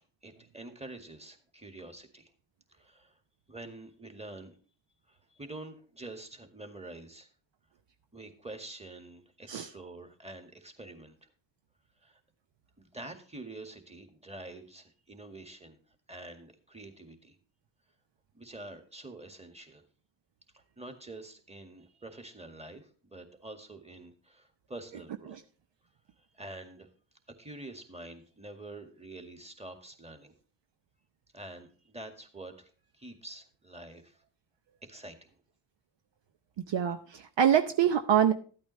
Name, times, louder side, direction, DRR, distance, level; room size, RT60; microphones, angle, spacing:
voice 1, 0.2-2.3 2.7-3.2 3.5-4.6 5.1-7.3 8.1-11.3 12.0-12.2 12.8-15.8 16.1-17.4 18.3-19.8 20.5-25.4 26.2-26.9 27.4-30.3 31.3-34.2 34.8-35.3, right 2 dB, 15° right, 6 dB, 1.9 m, -47 dB
voice 2, 36.7-38.3, right 9 dB, 60° right, 7 dB, 0.8 m, -25 dB
13.0 x 8.7 x 3.2 m, 0.41 s
supercardioid pair, 50°, 49 cm